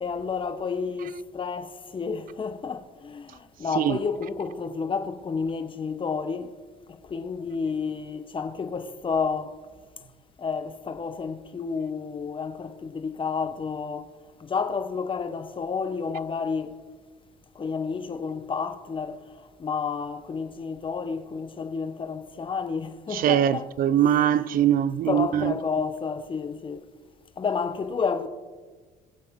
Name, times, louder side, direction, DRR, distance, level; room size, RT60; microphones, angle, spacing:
voice 1, 0.0-6.5 7.1-9.5 10.4-14.1 14.4-16.7 17.5-19.2 19.6-23.7 24.3-24.4 25.1-26.8 27.4-28.3, left 5 dB, 30° left, 1.0 m, -30 dB
voice 2, 23.1-25.5, right 10 dB, 55° right, 0.5 m, -22 dB
21.5 x 7.5 x 3.7 m
cardioid pair, 110°, 17 cm